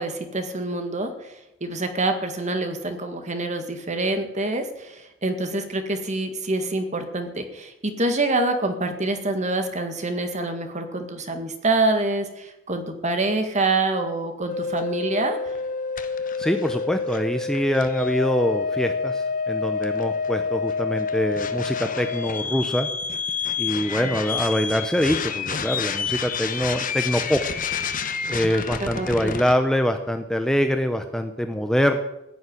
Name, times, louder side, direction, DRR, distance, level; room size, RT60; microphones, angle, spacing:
voice 1, 0.0-1.4 1.6-15.4 24.0-24.1 28.8-29.3, right 2 dB, 35° right, 6 dB, 1.9 m, -26 dB
sound 1, 14.5-29.6, left 5 dB, 40° left, 1.1 m, -28 dB
voice 2, 16.4-22.9 23.6-27.6 28.3-32.0, equal, 5° left, 7 dB, 0.7 m, -24 dB
15.5 x 7.2 x 9.8 m, 0.91 s
head